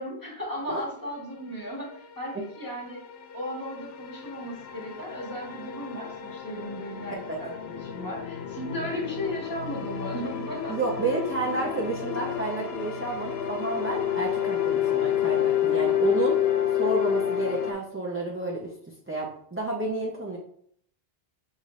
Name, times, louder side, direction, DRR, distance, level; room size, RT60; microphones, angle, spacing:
voice 1, 0.0-3.0 3.3-10.8, equal, 20° left, -5 dB, 1.4 m, -36 dB
sound 1, 1.6-17.7, left 10 dB, 80° left, 0.8 m, -30 dB
voice 2, 10.7-16.4 16.7-18.7 19.1-20.4, right 3 dB, 15° right, -3 dB, 0.4 m, -30 dB
5.8 x 2.5 x 3.1 m, 0.65 s
omnidirectional pair, 1.0 m